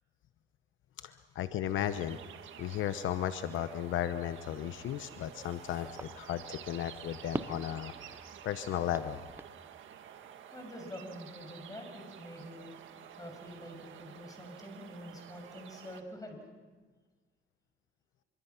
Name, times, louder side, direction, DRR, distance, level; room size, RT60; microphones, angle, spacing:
voice 1, 1.0-2.2 2.6-7.9 8.4-9.2, left 11 dB, 75° left, 11 dB, 1.0 m, -35 dB
sound 1, 1.6-16.0, right 9 dB, 75° right, 1.7 m, -51 dB
sound 2, 4.5-9.5, right 2 dB, 10° right, 0.7 m, -46 dB
voice 2, 10.5-12.7 13.2-16.4, equal, 20° left, 4 dB, 6.7 m, -46 dB
26.0 x 25.0 x 5.9 m, 1.4 s
cardioid pair, 90°, 20 cm